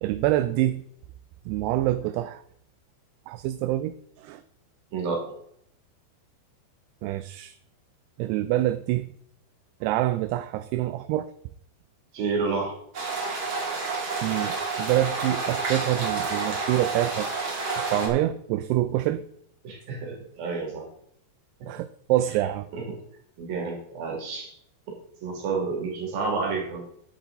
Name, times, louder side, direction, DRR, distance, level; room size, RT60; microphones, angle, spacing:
voice 1, 0.0-0.8 1.5-2.4 3.3-4.4 7.0-7.6 8.2-9.1 9.8-11.3 14.2-17.3 17.8-19.2 21.7-22.7, right 14 dB, 85° right, 11 dB, 2.5 m, -26 dB
voice 2, 4.9-5.2 12.1-12.8 19.6-20.9 22.7-23.0 23.4-24.5 25.2-26.8, right 4 dB, 60° right, -1 dB, 4.2 m, -30 dB
sound 1, 12.9-18.1, right 4 dB, 40° right, 1.9 m, -29 dB
10.0 x 8.1 x 4.0 m, 0.69 s
omnidirectional pair, 4.8 m